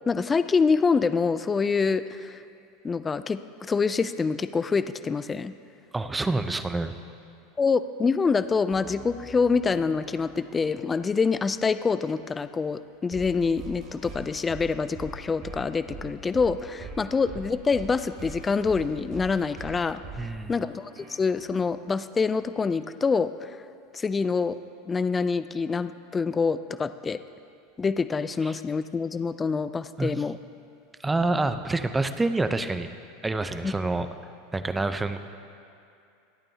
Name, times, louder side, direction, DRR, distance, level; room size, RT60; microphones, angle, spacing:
voice 1, 0.1-2.4 2.8-5.5 7.6-20.0 20.5-23.5 23.9-24.6 24.9-27.2 27.8-30.4 33.6-33.7, left 5 dB, 20° left, 13 dB, 0.4 m, -26 dB
voice 2, 5.9-6.9 20.2-20.5 28.4-28.5 30.0-30.1 31.0-32.9 33.2-34.1 34.5-35.2, right 2 dB, 15° right, 10 dB, 0.7 m, -27 dB
sound 1, 8.7-13.0 13.3-13.4 14.0-14.1, left 2 dB, 50° left, 3.0 m, -51 dB
sound 2, 13.1-21.5, right 3 dB, 50° right, 2.8 m, -42 dB
26.5 x 8.8 x 2.9 m, 2.5 s
hypercardioid pair, 90°, 0 cm